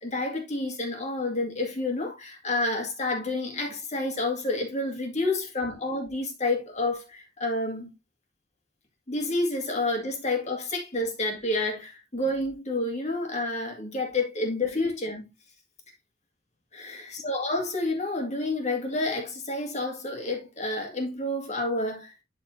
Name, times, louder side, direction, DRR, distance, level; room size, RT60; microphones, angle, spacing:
voice 1, 0.0-7.9 9.1-15.2 16.7-22.1, left 2 dB, 40° left, 2.1 m, -29 dB
12.0 x 4.3 x 2.7 m
head